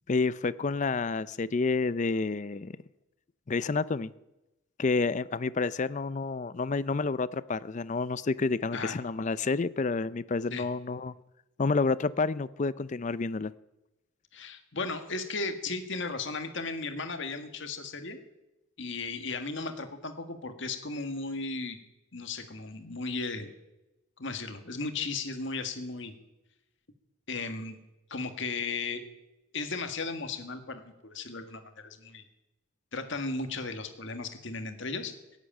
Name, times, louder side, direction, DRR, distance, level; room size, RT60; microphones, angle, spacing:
voice 1, 0.1-2.7 3.5-4.1 4.8-11.1 11.6-13.5, left 4 dB, 35° left, 17 dB, 0.4 m, -29 dB
voice 2, 14.3-18.2 18.8-21.8 22.1-23.5 24.2-26.1 27.3-27.8 28.1-29.0 29.5-32.2 32.9-35.1, left 3 dB, 60° left, 6 dB, 1.8 m, -35 dB
17.0 x 8.2 x 8.8 m, 0.97 s
head